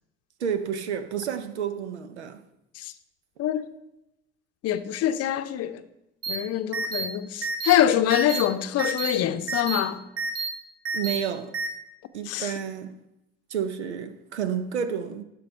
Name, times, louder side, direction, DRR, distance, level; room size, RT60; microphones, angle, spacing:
voice 1, 0.4-2.4 10.9-11.6 12.1-13.0 13.5-15.2, right 8 dB, 85° right, 0.7 m, -30 dB
voice 2, 4.6-5.8 6.3-10.0 12.3-12.5, left 11 dB, 50° left, 0.7 m, -24 dB
sound 1, 6.2-6.4 6.7-7.0 7.4-7.7 8.1-8.4 8.8-9.1 9.5-9.8 10.2-10.5 10.8-11.2 11.5-11.7, right 4 dB, 45° right, 1.8 m, -29 dB
11.5 x 4.0 x 5.5 m
hypercardioid pair, 65°, 33 cm